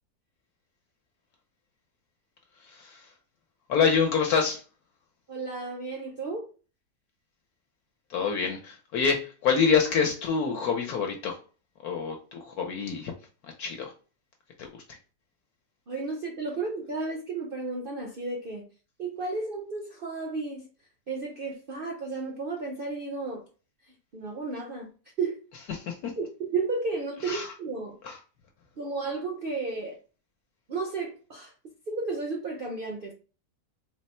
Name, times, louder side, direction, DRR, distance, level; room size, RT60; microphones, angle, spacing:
voice 1, 2.5-3.1 3.7-4.6 8.1-11.4 11.8-13.1 13.4-13.9 14.6-15.0 25.7-26.2 27.2-27.5 28.0-28.2, left 6 dB, 70° left, 1.1 m, -27 dB
voice 2, 5.3-6.5 15.9-18.7 19.0-20.7 21.1-23.5 23.9-25.4 26.2-28.0 28.8-30.0 30.7-31.5 31.9-33.1, right 3 dB, 70° right, 0.5 m, -33 dB
3.9 x 2.0 x 4.2 m
omnidirectional pair, 1.8 m